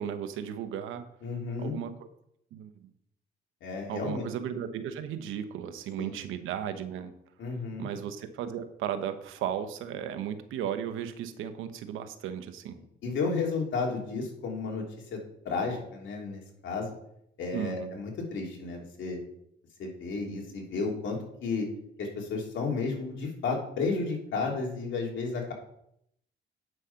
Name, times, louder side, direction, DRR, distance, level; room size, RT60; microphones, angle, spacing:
voice 1, 0.0-1.1 1.6-2.1 2.5-2.7 3.9-7.1 7.8-12.8 17.5-18.0, right 9 dB, 90° right, 10 dB, 1.0 m, -35 dB
voice 2, 1.2-1.7 3.6-4.2 6.0-6.2 7.4-7.9 13.0-14.8 15.1-15.2 15.4-16.9 17.4-19.2 19.8-21.7 22.0-25.5, left 4 dB, 70° left, 0 dB, 3.1 m, -32 dB
9.1 x 6.4 x 5.7 m, 0.73 s
cardioid pair, 90°, 20 cm